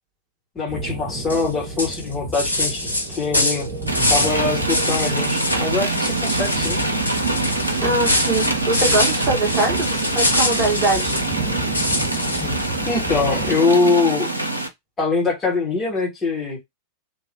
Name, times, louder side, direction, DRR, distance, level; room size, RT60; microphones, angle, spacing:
voice 1, 0.6-3.7 4.1-6.8 12.9-14.3 15.0-16.6, left 4 dB, 20° left, 2.0 m, -22 dB
sound 1, 0.7-13.6, right 2 dB, 45° right, 1.1 m, -32 dB
sound 2, 1.3-1.5 1.8-4.4 4.7-5.6 5.9-11.3 11.7-12.7, left 1 dB, 80° left, 0.8 m, -24 dB
sound 3, 3.9-14.7, right 2 dB, 85° right, 0.7 m, -24 dB
voice 2, 7.8-11.2, right 2 dB, 25° right, 1.6 m, -22 dB
3.2 x 3.0 x 3.0 m
figure-of-eight pair, 90°, 0 cm